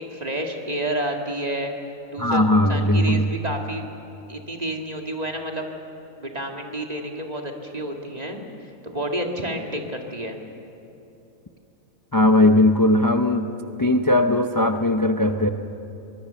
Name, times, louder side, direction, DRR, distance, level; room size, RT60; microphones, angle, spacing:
voice 1, 0.0-1.7 2.1-2.4 2.7-3.9 4.3-5.6 6.2-10.4, right 1 dB, 30° right, 2 dB, 2.0 m, -30 dB
voice 2, 2.2-3.3 12.1-13.5 13.8-15.5, left 1 dB, 25° left, 6 dB, 0.4 m, -18 dB
24.0 x 21.0 x 6.9 m, 2.8 s
omnidirectional pair, 1.5 m